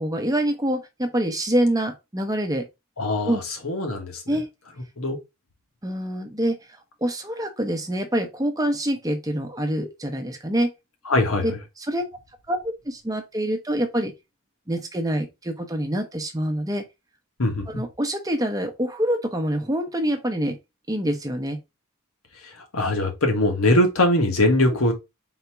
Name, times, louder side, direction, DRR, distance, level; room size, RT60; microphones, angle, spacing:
voice 1, 0.0-2.7 3.2-3.4 4.3-4.5 5.8-6.6 7.0-10.7 11.4-11.5 11.8-12.0 12.5-14.1 14.7-16.8 17.7-20.6 20.9-21.6, right 1 dB, 15° right, 0.7 m, -25 dB
voice 2, 3.0-4.2 5.0-5.2 11.1-11.6 17.4-17.8 22.4-24.9, left 1 dB, 75° left, 1.4 m, -22 dB
4.0 x 2.8 x 4.5 m
head